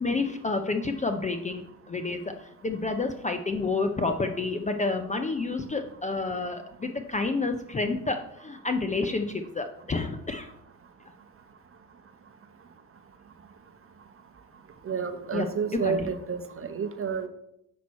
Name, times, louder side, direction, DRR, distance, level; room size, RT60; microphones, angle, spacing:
voice 1, 0.0-10.5 15.3-15.5 15.8-16.1, left 3 dB, 15° left, 6 dB, 0.6 m, -29 dB
voice 2, 14.8-17.3, right 6 dB, 30° right, 9 dB, 0.9 m, -30 dB
6.3 x 5.9 x 4.2 m, 0.77 s
hypercardioid pair, 70°, 45 cm